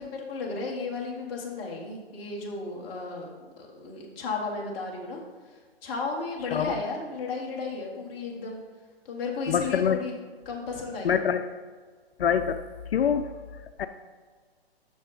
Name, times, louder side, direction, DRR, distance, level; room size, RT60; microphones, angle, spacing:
voice 1, 0.0-5.2 5.8-8.6 9.0-10.1 10.4-11.2, left 4 dB, 15° left, -1 dB, 0.9 m, -34 dB
voice 2, 6.5-6.8 9.5-10.0 11.0-11.6 12.2-12.6 12.9-13.9, left 8 dB, 70° left, 9 dB, 0.5 m, -26 dB
7.3 x 6.0 x 3.8 m, 1.6 s
hypercardioid pair, 150°, 31 cm